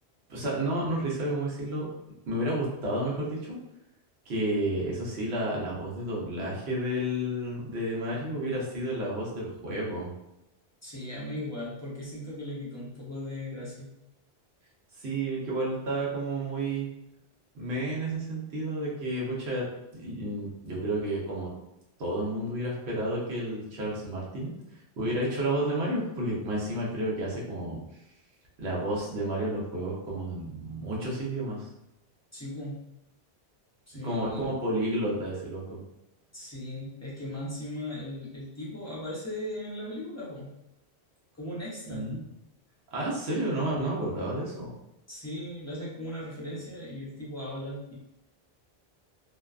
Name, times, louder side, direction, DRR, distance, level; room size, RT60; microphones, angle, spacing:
voice 1, 0.3-1.9 2.3-3.6 4.3-10.1 15.0-16.9 17.5-19.7 19.9-21.5 22.0-24.5 25.0-27.8 28.6-31.7 34.0-35.6 41.9-42.2 42.9-44.7, right 1 dB, 80° right, -4 dB, 1.1 m, -31 dB
voice 2, 10.8-13.9 25.6-25.7 32.3-32.9 33.9-34.4 36.3-40.5 41.3-42.1 45.1-47.9, left 1 dB, 20° left, -7 dB, 0.6 m, -38 dB
2.6 x 2.2 x 2.3 m, 0.89 s
omnidirectional pair, 1.1 m